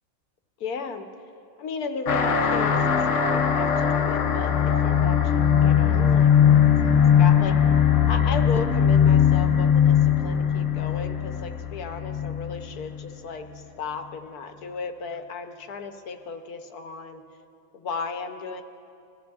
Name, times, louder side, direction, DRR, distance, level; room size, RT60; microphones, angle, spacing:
voice 1, 0.6-1.1 1.6-2.8 3.1-7.6 8.0-9.9 10.2-17.2 17.7-18.6, left 4 dB, 85° left, 7 dB, 1.3 m, -35 dB
sound 1, 2.1-13.0, left 8 dB, 60° left, 1.0 m, -20 dB
22.5 x 14.0 x 2.4 m, 2.6 s
omnidirectional pair, 1.6 m